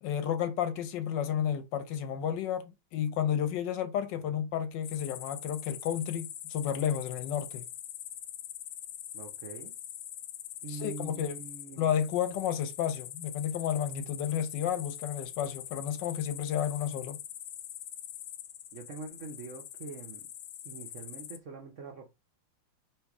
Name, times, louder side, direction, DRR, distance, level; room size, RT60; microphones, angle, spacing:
voice 1, 0.0-7.6 10.7-11.4 11.8-17.2, left 9 dB, 70° left, 1.2 m, -32 dB
sound 1, 4.8-21.4, left 11 dB, 90° left, 1.6 m, -44 dB
voice 2, 9.1-9.7 10.6-11.9 18.7-20.3 20.6-22.1, right 4 dB, 65° right, 0.7 m, -43 dB
3.2 x 3.1 x 4.7 m
omnidirectional pair, 2.3 m